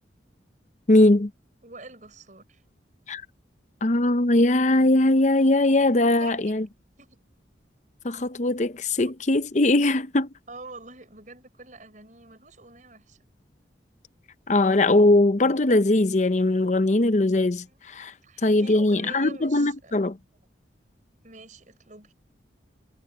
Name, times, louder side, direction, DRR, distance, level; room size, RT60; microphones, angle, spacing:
voice 1, 0.9-1.3 3.1-3.2 3.8-6.7 8.0-10.3 14.5-17.6 17.9-18.1 18.4-20.2, left 2 dB, 40° left, 0.7 m, -20 dB
voice 2, 1.6-2.6 6.2-6.5 7.0-7.2 10.5-13.2 17.6-17.8 18.2-20.0 21.2-22.1, right 3 dB, 45° right, 6.8 m, -46 dB
head